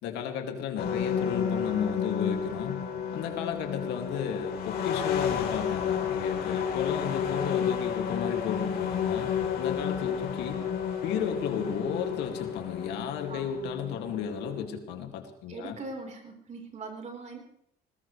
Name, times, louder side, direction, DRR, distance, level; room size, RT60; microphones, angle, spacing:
voice 1, 0.0-2.8 3.1-10.6 11.0-15.7, left 7 dB, 90° left, 4 dB, 2.4 m, -34 dB
sound 1, 0.8-14.6, left 8 dB, 65° left, 3.5 m, -31 dB
voice 2, 15.5-17.4, right 3 dB, 45° right, 2 dB, 4.3 m, -40 dB
20.5 x 19.0 x 3.3 m, 0.71 s
cardioid pair, 110°, 17 cm